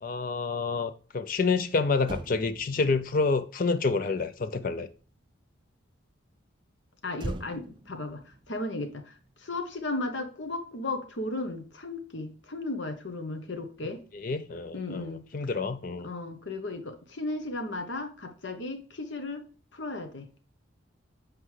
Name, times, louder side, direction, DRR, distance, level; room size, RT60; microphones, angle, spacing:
voice 1, 0.0-4.9 14.1-16.1, left 4 dB, 45° left, 0.4 m, -28 dB
Motor vehicle (road), 2.0-5.5 7.1-9.7 10.0-10.3, right 2 dB, 25° right, 0.4 m, -43 dB
voice 2, 7.0-9.1 9.4-14.0 14.7-15.2 16.0-19.4 19.7-20.3, left 2 dB, 65° left, 1.1 m, -35 dB
7.7 x 4.9 x 3.2 m
head